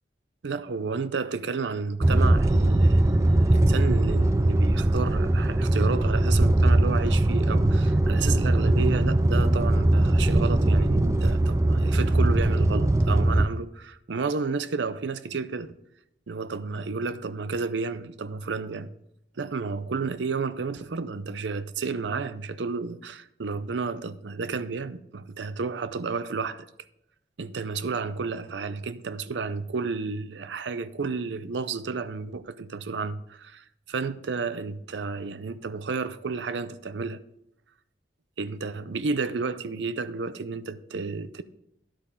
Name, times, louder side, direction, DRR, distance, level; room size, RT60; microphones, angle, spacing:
voice 1, 0.4-15.8 16.3-18.9 19.4-26.7 27.4-37.2 38.4-41.4, right 4 dB, 90° right, 0.6 m, -31 dB
sound 1, 2.0-13.5, right 1 dB, 15° right, 0.3 m, -21 dB
10.5 x 8.4 x 3.8 m
head